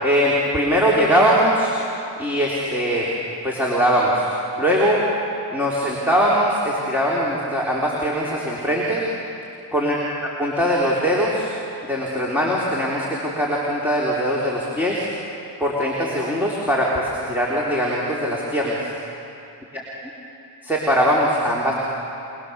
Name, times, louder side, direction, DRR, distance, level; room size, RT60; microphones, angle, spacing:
voice 1, 0.0-1.7 2.2-3.1 3.4-4.3 4.6-5.0 5.5-9.0 9.7-11.5 11.9-15.1 15.6-18.8 20.6-21.7, equal, 5° right, -5 dB, 3.7 m, -21 dB
25.5 x 20.0 x 7.0 m, 2.8 s
cardioid pair, 90°, 48 cm